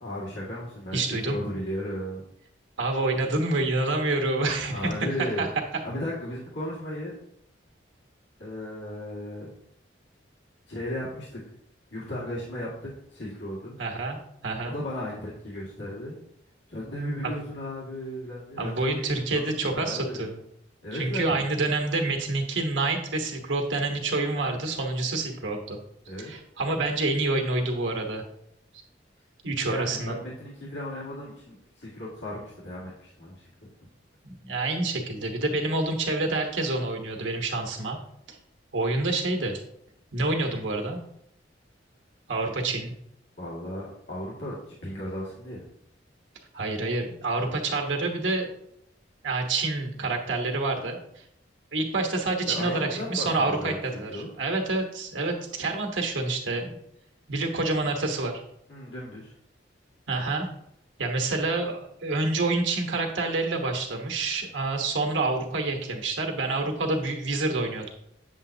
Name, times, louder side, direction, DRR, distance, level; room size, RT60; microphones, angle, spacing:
voice 1, 0.0-2.2 4.7-5.5 5.8-7.2 8.4-9.5 10.7-11.4 11.9-13.7 14.6-16.2 16.7-19.1 19.3-19.4 19.7-20.3 20.8-21.4 26.1-26.3 29.7-33.3 43.4-45.7 52.5-54.3 58.7-59.3, left 1 dB, 75° left, -7 dB, 2.0 m, -35 dB
voice 2, 0.9-1.5 2.8-5.5 13.8-14.8 17.2-17.3 18.6-20.4 20.9-25.8 26.2-28.2 29.4-30.2 34.2-38.0 38.3-38.4 38.7-39.6 40.1-41.0 42.3-42.9 46.5-48.5 49.2-51.2 51.7-56.8 57.3-58.4 60.1-60.5 61.0-67.9, right 2 dB, 90° right, 2 dB, 1.3 m, -28 dB
8.4 x 7.3 x 2.7 m, 0.75 s
head